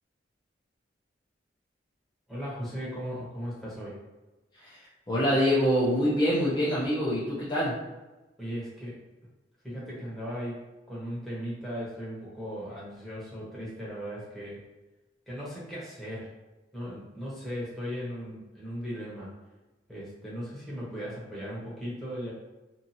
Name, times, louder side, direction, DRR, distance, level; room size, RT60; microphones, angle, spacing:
voice 1, 2.3-4.0 8.4-9.0 9.6-14.6 15.3-16.3 16.7-19.3 19.9-22.3, equal, ahead, -8 dB, 0.9 m, -37 dB
voice 2, 5.1-7.8, equal, 25° left, -9 dB, 0.6 m, -25 dB
2.7 x 2.4 x 2.6 m, 1.1 s
head